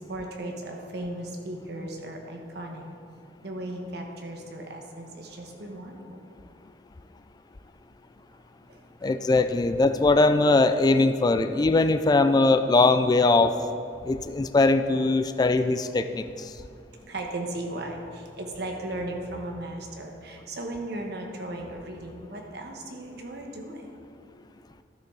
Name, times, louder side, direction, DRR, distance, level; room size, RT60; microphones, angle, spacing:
voice 1, 0.0-2.8 3.4-6.2 8.7-8.8 14.2-14.3 17.1-23.9, right 1 dB, 65° right, 2 dB, 1.2 m, -36 dB
voice 2, 9.0-13.5 14.0-16.2, left 3 dB, 25° left, 10 dB, 0.3 m, -21 dB
12.5 x 6.7 x 3.8 m, 2.3 s
head